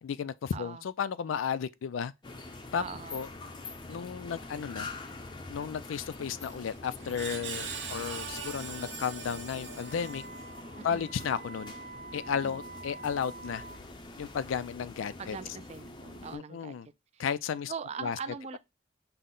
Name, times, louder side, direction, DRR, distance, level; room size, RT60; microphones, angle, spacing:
voice 1, 0.0-2.1 2.7-2.8 3.1-3.3 3.9-4.9 5.5-10.2 10.8-11.7 12.1-13.6 14.2-15.4 16.3-16.9 17.2-17.7 18.0-18.2, left 7 dB, 90° left, 0.4 m, -33 dB
voice 2, 0.5-0.8 2.8-3.2 10.8-11.1 12.4-12.5 15.2-16.8 17.1-17.2 17.7-18.6, right 6 dB, 35° right, 0.3 m, -41 dB
sound 1, 2.2-16.4, left 2 dB, 25° left, 0.5 m, -45 dB
Screech, 6.4-10.7, right 5 dB, 70° right, 0.9 m, -41 dB
Wind instrument woodwind instrument, 9.8-13.8, right 3 dB, 50° right, 0.7 m, -47 dB
5.7 x 2.1 x 3.7 m
head